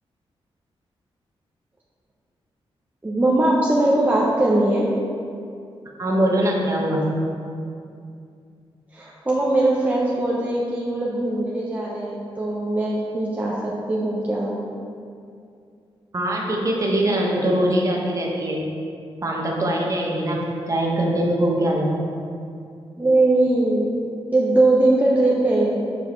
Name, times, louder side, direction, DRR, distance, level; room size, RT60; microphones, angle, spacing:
voice 1, 3.0-4.9 8.9-14.6 23.0-23.9 24.3-25.8, right 2 dB, 15° right, -5 dB, 0.7 m, -20 dB
voice 2, 6.0-7.1 16.1-18.6 19.2-21.9, right 1 dB, 35° right, -2 dB, 1.0 m, -22 dB
7.3 x 4.9 x 3.1 m, 2.4 s
wide cardioid pair, 115°, 10 cm